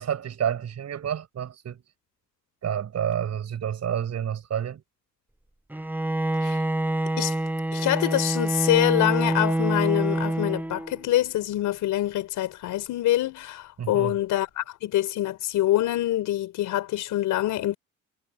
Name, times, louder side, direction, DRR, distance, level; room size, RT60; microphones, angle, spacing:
voice 1, 0.0-1.8 2.6-4.8 13.8-14.1, right 9 dB, 60° right, 6.6 m, -29 dB
Bowed string instrument, 5.7-11.1, right 1 dB, 5° right, 0.9 m, -26 dB
voice 2, 7.7-17.8, left 14 dB, 85° left, 5.0 m, -25 dB
cardioid pair, 90°, 30 cm